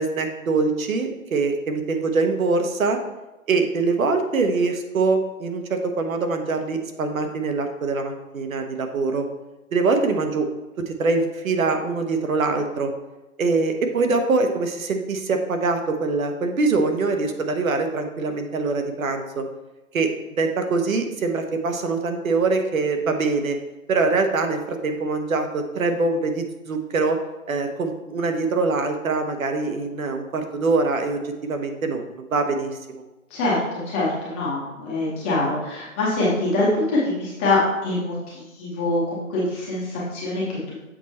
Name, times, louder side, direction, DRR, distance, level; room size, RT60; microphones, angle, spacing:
voice 1, 0.0-3.0 3.5-9.3 9.7-10.5 10.8-12.9 13.4-19.4 19.9-20.1 20.4-23.6 23.9-27.2 27.5-33.0, right 3 dB, 70° right, 5 dB, 1.1 m, -23 dB
voice 2, 33.9-40.8, left 2 dB, 10° left, -7 dB, 0.7 m, -24 dB
7.3 x 4.3 x 4.1 m, 1.1 s
hypercardioid pair, 155°, 42 cm